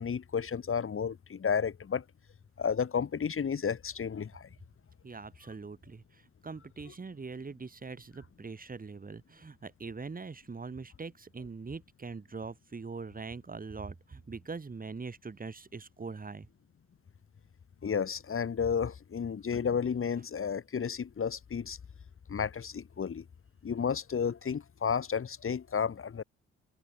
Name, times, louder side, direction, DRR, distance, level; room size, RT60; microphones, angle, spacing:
voice 1, 0.0-2.0 2.6-4.5 17.8-21.8 22.3-23.2 23.6-26.2, left 6 dB, 45° left, 5.0 m, -32 dB
voice 2, 5.0-16.5, right 4 dB, 30° right, 4.2 m, -42 dB
cardioid pair, 90°, 30 cm